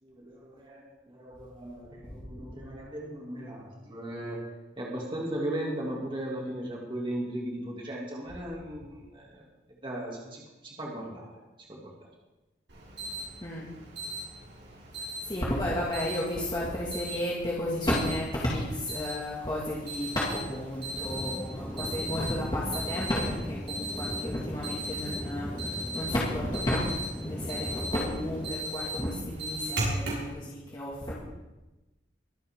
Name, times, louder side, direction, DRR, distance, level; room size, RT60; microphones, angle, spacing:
voice 1, 0.0-4.4 4.8-9.4 9.8-11.3 11.7-11.8, right 1 dB, 25° right, -3 dB, 2.6 m, -37 dB
Alarm, 12.7-30.3, right 1 dB, 90° right, 5.8 m, -38 dB
voice 2, 15.2-26.8 27.1-31.1, left 1 dB, 25° left, -6 dB, 2.1 m, -32 dB
sound 1, 19.2-28.5, left 1 dB, 5° left, 0.8 m, -39 dB
23.5 x 8.5 x 3.7 m, 1.1 s
head